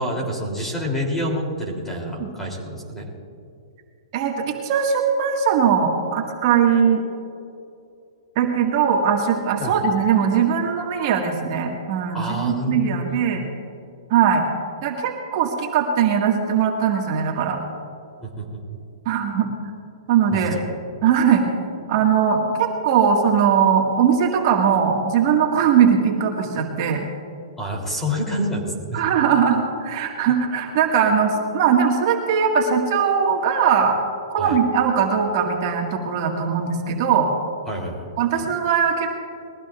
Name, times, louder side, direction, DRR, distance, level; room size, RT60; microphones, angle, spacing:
voice 1, 0.0-3.1 9.6-9.7 12.1-13.2 18.2-18.4 18.7-18.8 20.3-20.6 27.6-29.0 34.4-34.6 37.7-38.1, equal, 10° left, -2 dB, 3.2 m, -27 dB
voice 2, 4.1-7.0 8.4-13.4 14.1-14.5 14.8-17.6 19.1-19.5 20.1-20.6 21.0-21.4 21.9-27.1 28.9-34.0 34.3-37.3 38.2-39.2, right 7 dB, 45° right, 0 dB, 1.9 m, -20 dB
22.0 x 15.5 x 2.5 m, 2.5 s
hypercardioid pair, 150°, 3 cm